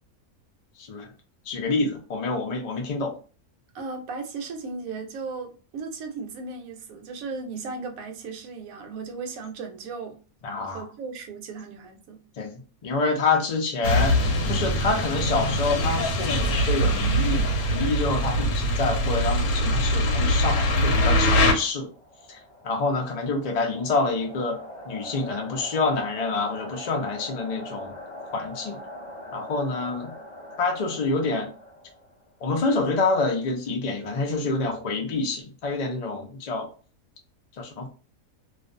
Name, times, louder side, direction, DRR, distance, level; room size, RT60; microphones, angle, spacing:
voice 1, 0.8-1.1 1.5-3.1 10.4-10.8 12.4-21.9 22.3-22.4 22.6-27.9 28.3-28.8 29.3-30.1 30.6-31.5 32.4-36.7 37.6-37.9, left 3 dB, 70° left, 0.3 m, -27 dB
voice 2, 3.7-10.2 10.6-12.2, right 4 dB, 75° right, 1.0 m, -36 dB
sound 1, 13.8-21.5, equal, 90° left, 1.1 m, -23 dB
sound 2, 21.6-32.4, left 1 dB, 40° left, 0.7 m, -42 dB
2.4 x 2.3 x 2.5 m
omnidirectional pair, 1.5 m